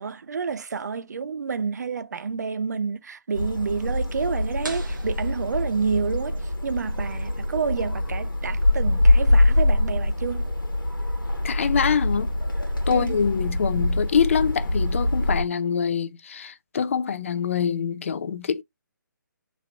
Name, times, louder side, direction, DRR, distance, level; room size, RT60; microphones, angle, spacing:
voice 1, 0.0-10.5 12.9-13.3, right 5 dB, 55° right, 0.4 m, -29 dB
sound 1, 3.3-15.4, left 1 dB, 80° left, 1.1 m, -24 dB
sound 2, 4.6-6.3, right 2 dB, 70° right, 1.2 m, -41 dB
voice 2, 11.4-12.3 12.9-18.6, left 7 dB, 40° left, 0.4 m, -25 dB
2.9 x 2.8 x 2.2 m
figure-of-eight pair, 145°, 11 cm